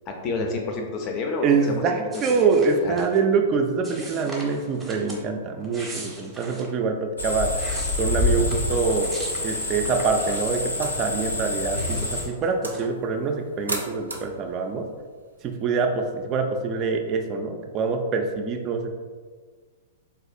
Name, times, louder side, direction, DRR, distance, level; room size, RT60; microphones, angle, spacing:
voice 1, 0.1-1.9 2.1-3.1, left 3 dB, 35° left, 2 dB, 0.4 m, -30 dB
voice 2, 1.4-7.5 8.0-9.1 9.4-14.9 15.4-18.9, right 5 dB, 30° right, 3 dB, 0.3 m, -25 dB
sound 1, 2.1-3.2 3.8-5.2 5.6-6.7 7.3-10.9 11.2-12.9, right 2 dB, 15° right, 0.7 m, -41 dB
sound 2, 7.2-12.3, left 2 dB, 90° left, 0.7 m, -27 dB
sound 3, 10.8-16.3, right 2 dB, 90° right, 0.5 m, -39 dB
4.0 x 2.3 x 2.5 m, 1.5 s
figure-of-eight pair, 105°, 0 cm